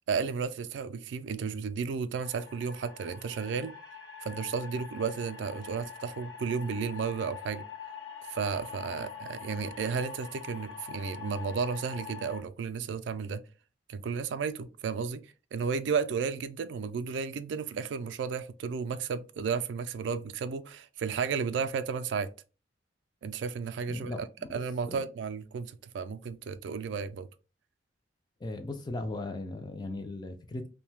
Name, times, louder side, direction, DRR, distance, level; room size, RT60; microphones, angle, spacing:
voice 1, 0.1-3.7 4.2-7.7 8.3-13.4 13.9-22.3 23.2-27.3, right 5 dB, 75° right, 0.3 m, -33 dB
sound 1, 2.2-12.4, left 7 dB, 90° left, 0.8 m, -44 dB
voice 2, 23.9-24.5 24.9-25.0 28.4-30.7, left 2 dB, 25° left, 0.3 m, -37 dB
2.7 x 2.2 x 3.2 m
head